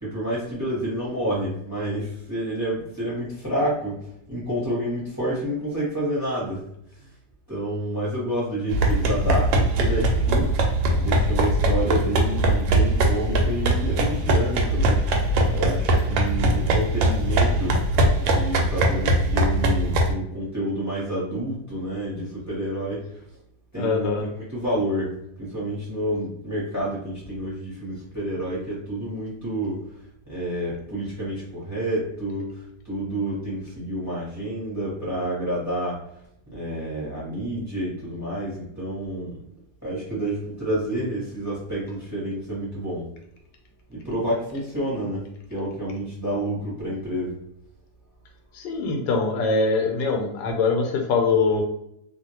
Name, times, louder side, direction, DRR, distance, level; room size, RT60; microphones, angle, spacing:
voice 1, 0.0-4.0 4.3-6.6 7.0-7.1 7.5-10.5 11.0-15.2 15.5-17.8 18.2-23.1 23.7-25.1 25.4-29.8 30.3-36.0 36.5-39.4 39.8-43.1 43.9-45.2 45.5-47.4, right 1 dB, 10° right, -7 dB, 0.9 m, -29 dB
sound 1, 8.7-20.1, right 1 dB, 90° right, 1.3 m, -21 dB
voice 2, 23.8-24.2 48.5-51.6, left 4 dB, 80° left, 2 dB, 1.3 m, -23 dB
2.8 x 2.6 x 2.8 m, 0.76 s
omnidirectional pair, 2.0 m